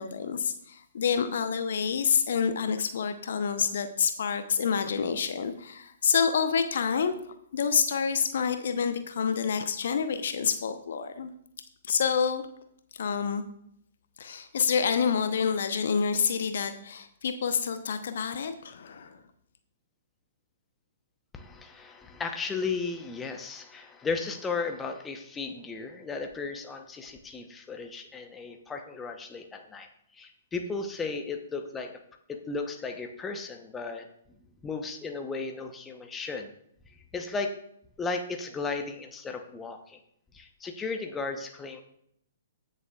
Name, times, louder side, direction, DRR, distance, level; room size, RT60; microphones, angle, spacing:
voice 1, 0.0-7.1 7.5-11.3 11.8-12.4 13.0-13.4 14.2-19.2, left 6 dB, 55° left, 9 dB, 0.9 m, -28 dB
voice 2, 21.3-31.9 32.3-34.1 34.6-36.5 36.9-37.5 38.0-40.0 40.3-41.8, left 4 dB, 15° left, 5 dB, 0.9 m, -35 dB
16.0 x 6.7 x 2.4 m, 0.71 s
figure-of-eight pair, 120°, 0 cm